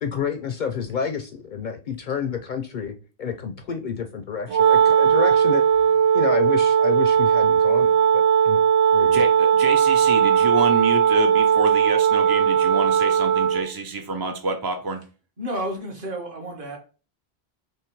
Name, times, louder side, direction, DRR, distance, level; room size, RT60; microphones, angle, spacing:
voice 1, 0.0-2.9 3.2-5.6 6.1-8.6 8.9-9.2, left 6 dB, 60° left, 0.5 m, -29 dB
Wind instrument woodwind instrument, 4.5-13.7, right 8 dB, 90° right, 0.8 m, -18 dB
voice 2, 9.1-15.0, right 2 dB, 40° right, 0.3 m, -27 dB
voice 3, 15.4-16.8, right 1 dB, 55° right, 1.4 m, -31 dB
3.6 x 3.2 x 4.4 m
omnidirectional pair, 1.1 m